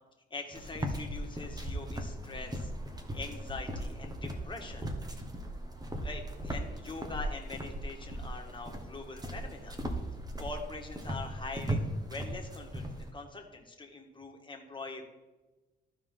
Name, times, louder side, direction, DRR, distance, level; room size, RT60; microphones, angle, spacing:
voice 1, 0.3-2.7 3.1-4.9 6.0-9.8 10.4-15.0, left 3 dB, 25° left, 2 dB, 1.8 m, -43 dB
sound 1, 0.5-13.1, right 1 dB, 20° right, 1.3 m, -38 dB
14.5 x 4.9 x 3.8 m, 1.2 s
cardioid pair, 90°, 20 cm